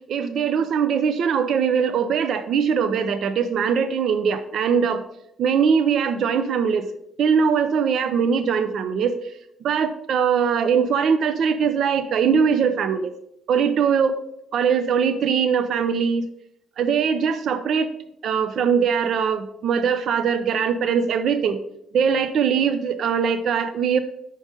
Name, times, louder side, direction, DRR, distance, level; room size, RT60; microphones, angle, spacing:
voice 1, 0.1-5.0 5.4-6.9 7.2-9.2 9.6-13.1 13.5-14.2 14.5-16.2 16.8-17.9 18.2-21.6 21.9-24.0, right 6 dB, 70° right, 11 dB, 0.4 m, -21 dB
5.3 x 5.1 x 4.9 m, 0.79 s
cardioid pair, 90°, 0 cm